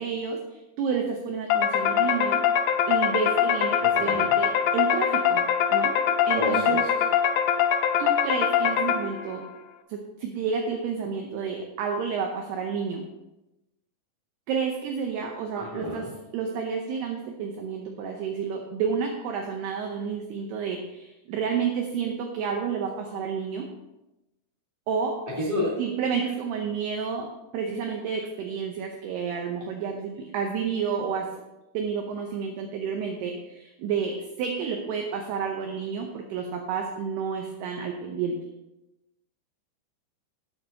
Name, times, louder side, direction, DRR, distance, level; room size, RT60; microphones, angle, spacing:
voice 1, 0.0-2.4 2.9-5.4 5.7-5.9 6.3-6.8 8.0-9.4 9.9-13.1 14.5-16.1 16.3-23.7 24.9-25.2 25.8-27.3 27.5-31.3 31.7-38.4, right 6 dB, 85° right, 2 dB, 2.3 m, -30 dB
sound 1, 1.5-9.4, left 8 dB, 85° left, 3.2 m, -23 dB
voice 2, 3.8-4.3 6.3-6.8 15.5-16.1 25.2-25.8, left 1 dB, 20° left, -6 dB, 1.3 m, -30 dB
15.5 x 7.3 x 2.8 m, 0.97 s
omnidirectional pair, 5.8 m